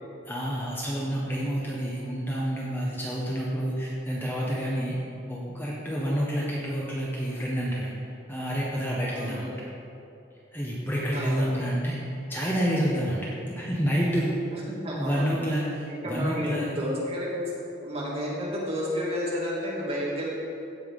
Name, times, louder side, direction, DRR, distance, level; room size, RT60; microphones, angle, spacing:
voice 1, 0.3-5.0 5.3-7.9 8.3-9.5 10.5-12.0 12.3-14.3 15.0-16.9, equal, 10° left, -5 dB, 1.3 m, -28 dB
voice 2, 9.1-9.5 11.1-11.5 14.5-15.3 15.9-17.4 17.8-20.3, equal, 30° right, -6 dB, 2.6 m, -31 dB
16.0 x 5.9 x 5.4 m, 2.7 s
head